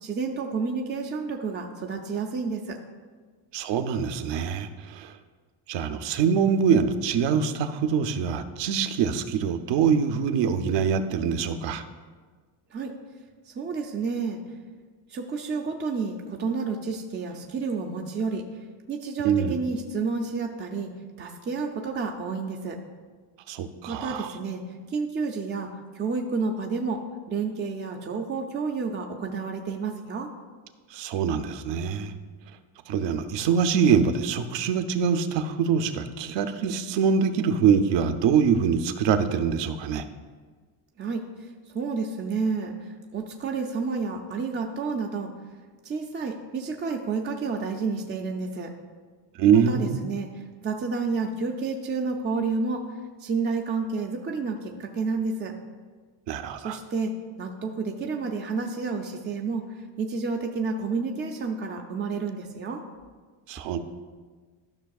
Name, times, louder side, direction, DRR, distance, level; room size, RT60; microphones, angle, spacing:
voice 1, 0.0-2.8 12.7-12.9 13.5-14.4 15.1-18.4 18.9-20.9 21.2-22.8 23.9-24.6 24.9-30.3 41.0-45.3 45.8-48.7 49.7-52.9 53.2-55.5 56.6-62.8, right 4 dB, 25° right, 2 dB, 0.4 m, -30 dB
voice 2, 3.5-5.1 5.7-11.8 19.2-19.6 23.5-24.3 30.9-32.1 32.9-40.0 49.4-50.1 56.3-56.8 63.5-63.8, right 6 dB, 60° right, 10 dB, 0.7 m, -24 dB
13.0 x 5.7 x 2.3 m, 1.5 s
cardioid pair, 130°, 50 cm